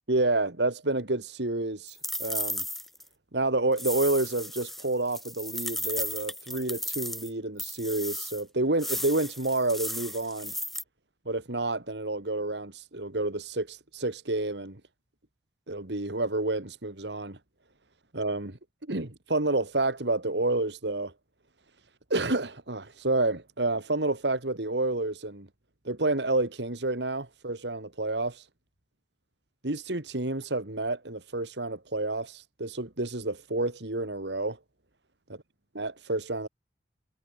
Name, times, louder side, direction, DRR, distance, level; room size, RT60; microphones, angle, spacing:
voice 1, 0.1-2.6 3.3-10.5 11.3-14.8 15.7-17.4 18.1-18.6 18.9-21.1 22.1-25.5 25.8-28.4 29.6-34.6 35.8-36.5, right 2 dB, 80° right, 2.3 m, -29 dB
sound 1, 1.9-3.0 3.8-7.3 7.6-8.4 8.8-10.8, left 1 dB, ahead, 1.5 m, -35 dB
head